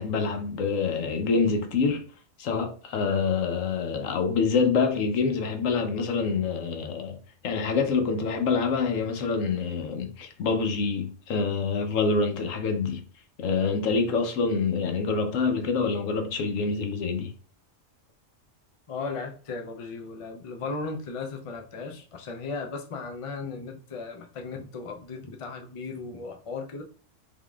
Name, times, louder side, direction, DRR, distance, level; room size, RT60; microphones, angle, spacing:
voice 1, 0.0-2.0 2.4-7.2 7.4-13.0 13.4-17.3, left 4 dB, 80° left, 1.1 m, -26 dB
voice 2, 18.9-26.8, left 4 dB, 50° left, 0.4 m, -36 dB
3.6 x 3.6 x 2.3 m
omnidirectional pair, 1.3 m